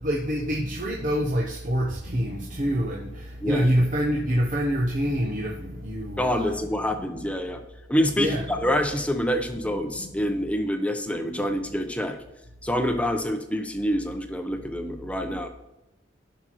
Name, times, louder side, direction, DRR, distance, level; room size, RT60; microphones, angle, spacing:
voice 1, 0.0-6.5 8.2-8.4, equal, 45° right, -2 dB, 0.9 m, -26 dB
sound 1, 0.6-12.4, equal, 65° right, 1.2 m, -46 dB
voice 2, 6.2-7.6 7.9-12.2 12.6-15.5, equal, 5° left, 6 dB, 0.7 m, -26 dB
14.5 x 6.0 x 3.1 m, 0.95 s
head